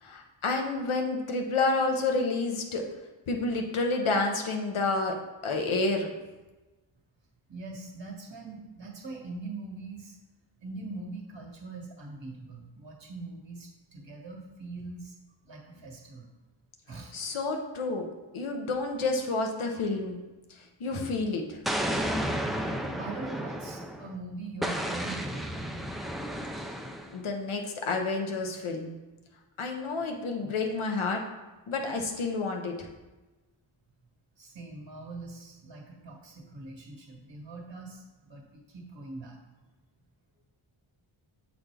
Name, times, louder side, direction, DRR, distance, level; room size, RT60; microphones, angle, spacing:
voice 1, 0.0-2.8 3.3-5.2 5.4-6.1 17.1-18.0 18.3-20.2 20.5-21.6 27.1-29.0 29.6-31.2 31.7-32.9, left 3 dB, 75° left, 3 dB, 0.9 m, -29 dB
voice 2, 7.5-10.2 10.6-15.1 15.4-16.3 16.9-17.2 22.9-25.8 30.4-30.5 34.4-39.4, right 3 dB, 60° right, 1 dB, 1.5 m, -42 dB
Explosion, 21.6-24.1 24.6-27.2, equal, ahead, 0.4 m, -32 dB
7.1 x 4.0 x 3.4 m, 1.1 s
wide cardioid pair, 90°, 49 cm